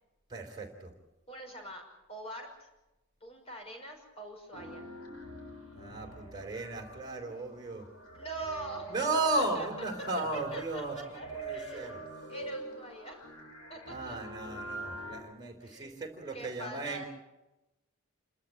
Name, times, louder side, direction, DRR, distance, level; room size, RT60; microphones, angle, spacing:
voice 1, 0.3-0.9 5.8-7.9 8.9-12.0 13.8-17.0, right 2 dB, 20° right, 2 dB, 3.8 m, -35 dB
voice 2, 1.3-2.7 3.2-4.9 8.1-9.0 9.5-9.7 10.3-12.0 12.3-13.2 13.7-14.2 15.6-16.0 16.3-17.1, right 1 dB, 25° left, 2 dB, 5.8 m, -44 dB
sound 1, 4.5-15.2, right 2 dB, 80° left, 4.4 m, -45 dB
28.0 x 13.0 x 8.8 m, 1.0 s
head